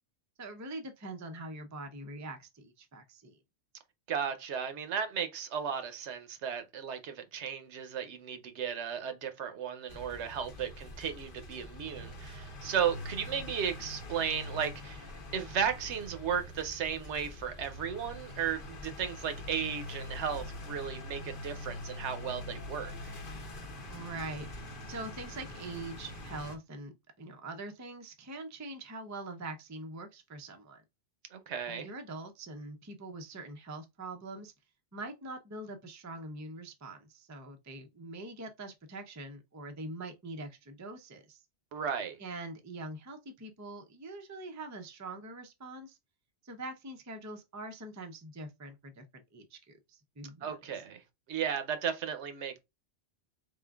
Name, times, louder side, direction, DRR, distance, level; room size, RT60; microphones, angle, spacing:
voice 1, 0.4-3.4 23.9-30.8 31.7-34.5 34.9-41.4 42.2-46.0 46.4-50.8, right 2 dB, 25° right, 0.4 m, -44 dB
voice 2, 4.1-15.1 15.3-22.9 31.3-31.9 41.7-42.2 50.4-51.0 51.3-52.6, right 7 dB, 80° right, 1.0 m, -35 dB
sound 1, 9.9-26.6, left 1 dB, 55° left, 0.8 m, -44 dB
3.7 x 3.6 x 2.3 m
omnidirectional pair, 1.2 m